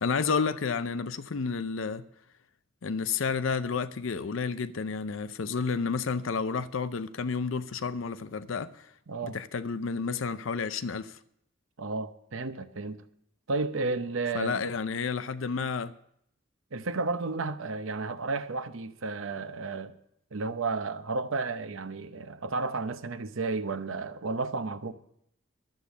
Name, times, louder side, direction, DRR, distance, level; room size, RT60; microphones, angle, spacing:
voice 1, 0.0-2.0 2.8-8.9 9.2-11.2 14.3-15.9, left 5 dB, 80° left, 0.6 m, -31 dB
voice 2, 9.1-9.4 11.8-13.0 13.5-14.6 16.7-20.0 20.3-24.9, right 3 dB, 80° right, 0.8 m, -32 dB
12.0 x 8.2 x 7.1 m
head